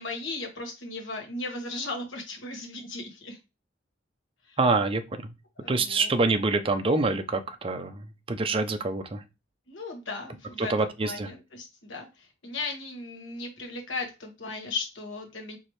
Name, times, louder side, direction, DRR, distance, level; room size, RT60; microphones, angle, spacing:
voice 1, 0.0-3.4 4.5-4.6 5.6-6.1 9.7-15.6, left 3 dB, 75° left, 2 dB, 1.4 m, -36 dB
voice 2, 4.6-5.0 5.7-9.2 10.6-11.3, right 3 dB, 30° right, 7 dB, 0.5 m, -26 dB
4.6 x 3.1 x 3.1 m, 0.25 s
head